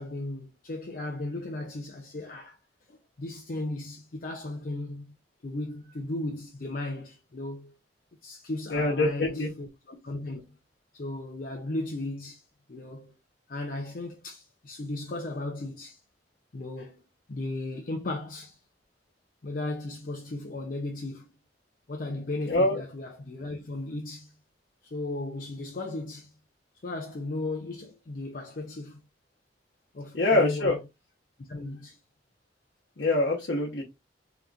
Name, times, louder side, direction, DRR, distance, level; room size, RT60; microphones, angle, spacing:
voice 1, 0.0-2.6 2.9-5.1 5.4-7.7 8.2-10.6 10.9-13.2 13.5-16.0 16.5-17.0 17.3-18.6 19.4-21.3 21.9-24.3 24.8-26.3 26.8-29.0 29.9-30.8 31.4-32.0, left 2 dB, 50° left, 0.5 m, -36 dB
voice 2, 8.7-9.5 22.5-22.8 30.1-30.8 33.0-33.8, left 2 dB, 70° left, 0.9 m, -24 dB
3.6 x 2.8 x 2.4 m
head